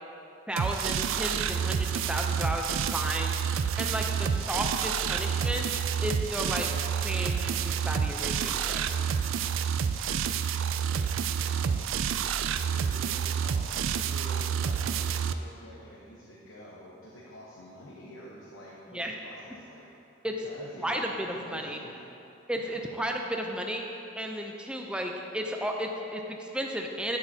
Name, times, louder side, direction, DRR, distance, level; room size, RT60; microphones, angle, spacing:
voice 1, 0.5-3.3 3.8-5.7 6.0-8.8 18.9-19.1 20.2-20.3 20.8-21.8 22.5-23.8 24.2-27.2, equal, 5° right, 1 dB, 0.5 m, -33 dB
sound 1, 0.6-15.3, right 7 dB, 75° right, 0.3 m, -29 dB
voice 2, 10.7-11.9 12.7-19.9 20.2-21.1 21.3-22.0 22.5-22.8, equal, 80° left, -5 dB, 1.0 m, -48 dB
10.0 x 7.9 x 2.8 m, 2.8 s
head